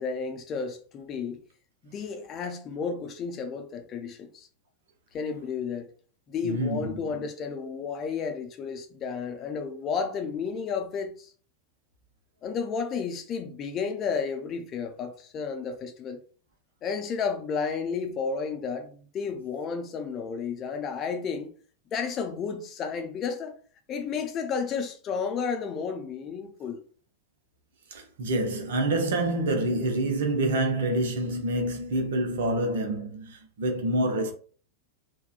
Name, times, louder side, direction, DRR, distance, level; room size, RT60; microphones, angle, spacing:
voice 1, 0.0-1.4 1.8-4.5 5.1-5.9 6.3-11.3 12.4-16.2 16.8-21.5 21.9-23.5 23.9-26.8, left 5 dB, 30° left, 0.5 m, -32 dB
voice 2, 6.4-7.3 27.9-34.3, right 1 dB, 60° right, 0.6 m, -27 dB
3.4 x 2.1 x 2.4 m
figure-of-eight pair, 90°, 0 cm